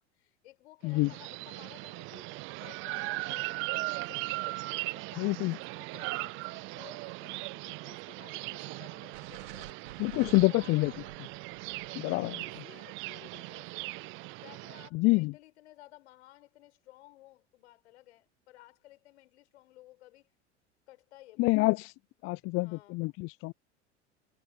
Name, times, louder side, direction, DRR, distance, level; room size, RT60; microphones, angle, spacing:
voice 1, 0.0-9.8 10.3-12.0 12.4-13.9 14.4-20.3 20.9-21.7 22.6-23.0, left 16 dB, 70° left, 6.3 m, -56 dB
sound 1, 0.9-14.9, right 23 dB, 35° right, 0.4 m, -39 dB
voice 2, 5.2-5.6 10.0-10.9 12.0-12.4 14.9-15.3 21.4-21.9 22.2-23.5, left 23 dB, 40° left, 0.5 m, -27 dB
sound 2, 9.1-13.3, right 12 dB, 75° right, 4.0 m, -50 dB
hypercardioid pair, 80°, 35 cm